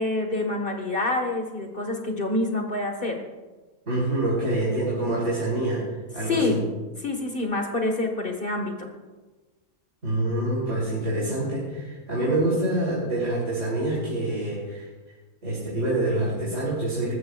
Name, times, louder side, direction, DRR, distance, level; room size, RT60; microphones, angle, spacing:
voice 1, 0.0-3.2 6.3-6.6 7.0-8.9, left 2 dB, 35° left, 3 dB, 1.6 m, -27 dB
voice 2, 3.9-5.9 6.1-6.6 10.0-14.8 15.4-17.1, right 1 dB, 50° right, -8 dB, 3.8 m, -26 dB
19.5 x 14.0 x 2.4 m, 1.3 s
omnidirectional pair, 1.6 m